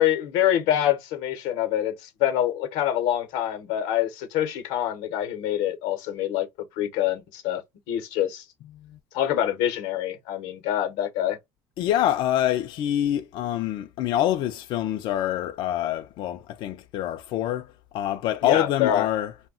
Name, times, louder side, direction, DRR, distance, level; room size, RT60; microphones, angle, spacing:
voice 1, 0.0-6.5 6.8-7.6 7.9-8.4 9.1-11.4 18.4-19.1, left 11 dB, 80° left, 0.8 m, -25 dB
voice 2, 11.8-19.3, left 12 dB, 60° left, 0.4 m, -26 dB
2.2 x 2.1 x 3.6 m
supercardioid pair, 105°, 9 cm